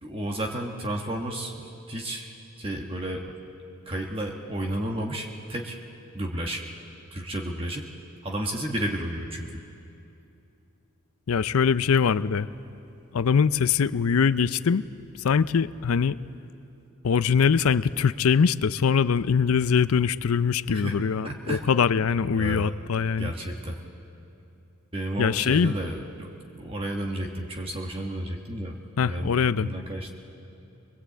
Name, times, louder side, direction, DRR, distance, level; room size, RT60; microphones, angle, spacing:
voice 1, 0.0-3.3 3.9-5.8 6.1-6.6 7.1-7.9 8.2-9.6 20.7-21.0 21.2-21.7 22.3-22.7 23.2-23.8 24.9-30.1, right 1 dB, 25° right, 1 dB, 1.3 m, -32 dB
voice 2, 11.3-12.5 13.1-14.8 15.2-16.2 17.0-23.3 25.2-25.7 29.0-29.7, left 6 dB, 75° left, 15 dB, 0.5 m, -22 dB
22.0 x 22.0 x 8.4 m, 2.7 s
head